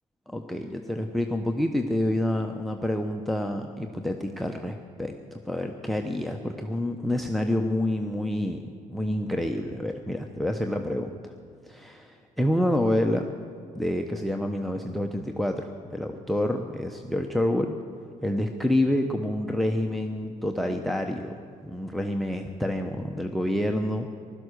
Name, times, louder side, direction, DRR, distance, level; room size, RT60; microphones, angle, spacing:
voice 1, 0.3-8.6 8.9-11.3 11.7-13.3 13.7-17.7 18.2-21.3 21.6-24.1, left 1 dB, ahead, 5 dB, 1.0 m, -28 dB
15.5 x 12.5 x 6.7 m, 2.3 s
hypercardioid pair, 65°, 18 cm